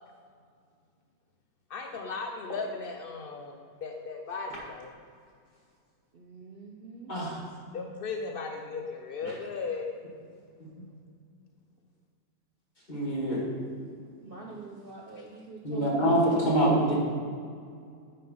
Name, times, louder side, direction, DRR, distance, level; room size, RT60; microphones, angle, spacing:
voice 1, 1.7-4.9 7.7-9.9, left 4 dB, 80° left, 3 dB, 0.5 m, -36 dB
voice 2, 6.1-7.1 14.2-16.9, right 4 dB, 45° right, -2 dB, 0.8 m, -43 dB
voice 3, 7.1-7.4 10.8-10.9 12.9-13.5 15.6-16.9, right 1 dB, 25° left, -5 dB, 2.1 m, -25 dB
9.3 x 5.5 x 5.5 m, 2.2 s
omnidirectional pair, 1.7 m